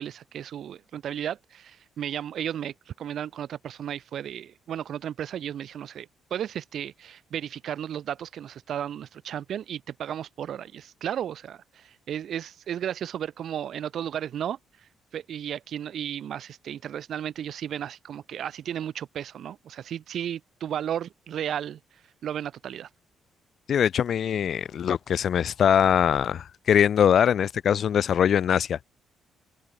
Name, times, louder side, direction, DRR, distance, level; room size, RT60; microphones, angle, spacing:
voice 1, 0.0-14.6 15.1-21.8 22.2-22.9, right 10 dB, 65° right, 4.0 m, -34 dB
voice 2, 23.7-28.8, left 8 dB, 60° left, 0.9 m, -22 dB
cardioid pair, 105°, 0 cm